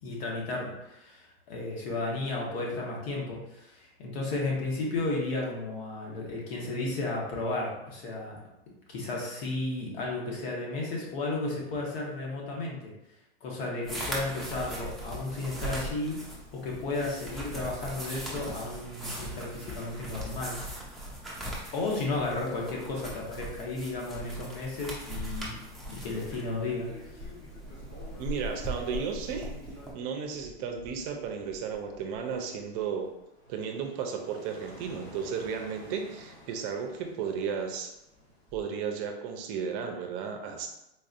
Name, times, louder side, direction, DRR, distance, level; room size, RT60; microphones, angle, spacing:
voice 1, 0.0-8.4 8.9-12.9 13.4-20.6 21.7-25.6 25.9-27.3, left 2 dB, 65° left, -2 dB, 1.3 m, -33 dB
sound 1, 13.8-29.9, right 1 dB, ahead, 0.6 m, -39 dB
sound 2, 24.4-38.6, left 1 dB, 35° left, 1.4 m, -52 dB
voice 2, 28.1-29.5 29.9-33.1 33.5-37.9 38.5-40.7, right 6 dB, 45° right, 4 dB, 0.6 m, -34 dB
3.9 x 2.6 x 2.5 m, 0.88 s
supercardioid pair, 130°, 32 cm